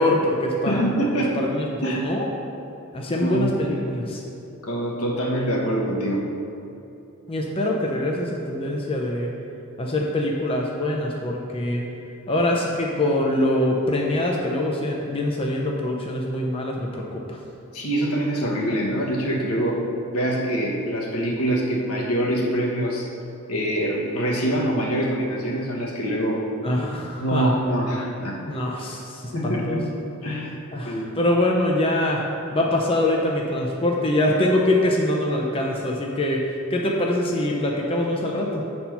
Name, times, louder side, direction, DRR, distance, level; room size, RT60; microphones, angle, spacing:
voice 1, 0.0-0.8 1.3-2.3 2.9-4.2 7.3-9.3 9.8-11.8 12.3-17.4 26.6-27.5 28.5-29.8 30.7-32.2 32.5-38.6, left 1 dB, 25° left, -1 dB, 0.6 m, -24 dB
voice 2, 0.7-1.4 1.8-2.1 3.2-3.5 4.6-6.3 17.7-19.8 20.1-23.1 23.5-26.4 27.2-28.4 29.3-29.9 30.2-30.5 30.8-31.1, right 1 dB, 75° left, -2 dB, 1.4 m, -24 dB
8.0 x 4.3 x 5.8 m, 2.8 s
head